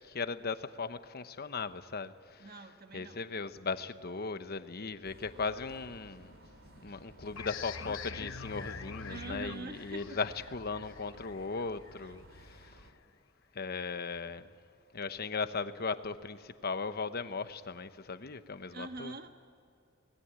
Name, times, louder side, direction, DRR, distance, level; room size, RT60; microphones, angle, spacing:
voice 1, 0.1-2.5 2.9-6.4 6.8-12.7 13.5-14.5 14.9-19.1, left 4 dB, 50° left, 1.0 m, -37 dB
voice 2, 2.4-3.3 9.1-10.2 12.0-12.1 18.7-19.3, right 3 dB, 50° right, 1.4 m, -44 dB
sound 1, 5.0-12.9, right 1 dB, 75° right, 2.8 m, -56 dB
sound 2, 7.4-12.7, left 5 dB, 70° left, 1.2 m, -45 dB
25.0 x 20.0 x 8.8 m
head